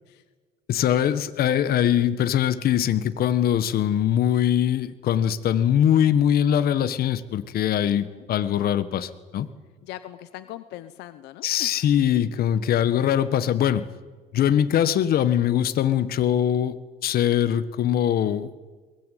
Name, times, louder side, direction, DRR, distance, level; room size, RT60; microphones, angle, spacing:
voice 1, 0.7-9.5 11.4-13.8 14.3-18.5, left 10 dB, 65° left, 13 dB, 1.6 m, -22 dB
voice 2, 7.9-8.3 9.8-11.9, left 14 dB, 90° left, 12 dB, 1.0 m, -41 dB
22.5 x 19.5 x 9.4 m, 1.3 s
cardioid pair, 110°, 17 cm